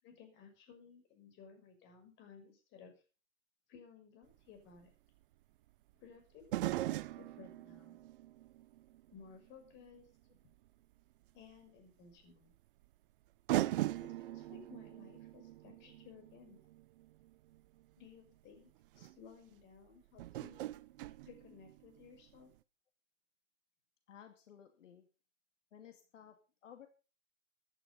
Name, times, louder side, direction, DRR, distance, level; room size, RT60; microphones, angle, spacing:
voice 1, 0.0-2.9 3.7-4.9 6.0-8.0 9.1-10.1 11.3-12.5 13.7-16.6 18.0-18.7 19.0-20.6 21.2-22.5, left 6 dB, 30° left, 5 dB, 5.9 m, -58 dB
sound 1, 4.3-4.4 6.4-9.4 9.9-10.0 11.5-11.6 12.8-12.9 13.5-17.6 18.5-18.6 18.9-19.1 20.2-22.1 22.3-22.4, right 15 dB, 45° right, 0.8 m, -40 dB
voice 2, 24.1-25.1 25.7-26.9, left 9 dB, 75° left, 6 dB, 2.6 m, -56 dB
15.0 x 11.0 x 5.4 m, 0.33 s
hypercardioid pair, 140°, 38 cm